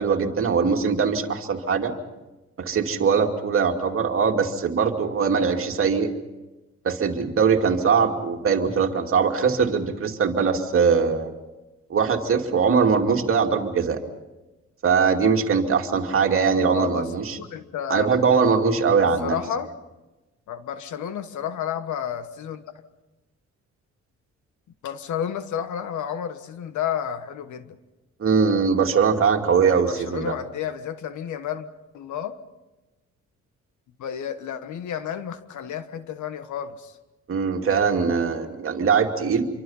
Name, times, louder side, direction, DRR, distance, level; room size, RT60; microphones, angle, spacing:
voice 1, 0.0-1.9 2.6-6.1 6.8-11.3 11.9-14.0 14.8-17.4 17.9-19.4 28.2-30.3 37.3-39.5, right 5 dB, 50° right, 3 dB, 2.5 m, -21 dB
voice 2, 16.7-18.1 18.8-19.7 20.5-22.6 24.8-27.7 29.6-31.7 31.9-32.4 34.0-37.0, left 9 dB, 80° left, 11 dB, 1.5 m, -31 dB
27.0 x 24.0 x 5.6 m, 1.1 s
cardioid pair, 115°, 29 cm